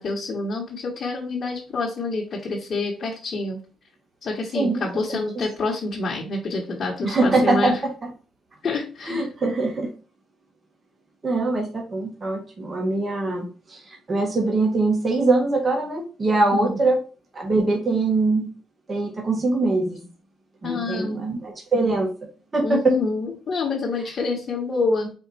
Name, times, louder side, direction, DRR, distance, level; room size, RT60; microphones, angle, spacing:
voice 1, 0.0-3.6 4.2-7.7 8.6-9.3 16.5-16.8 20.6-21.2 22.6-25.1, left 3 dB, 50° left, -3 dB, 1.3 m, -27 dB
voice 2, 5.1-5.4 7.0-8.1 9.0-9.9 11.2-17.0 17.3-18.5 18.9-20.0 20.6-22.1 22.5-23.0, right 3 dB, 30° right, 1 dB, 1.2 m, -23 dB
4.4 x 2.6 x 4.1 m, 0.36 s
cardioid pair, 90°, 0 cm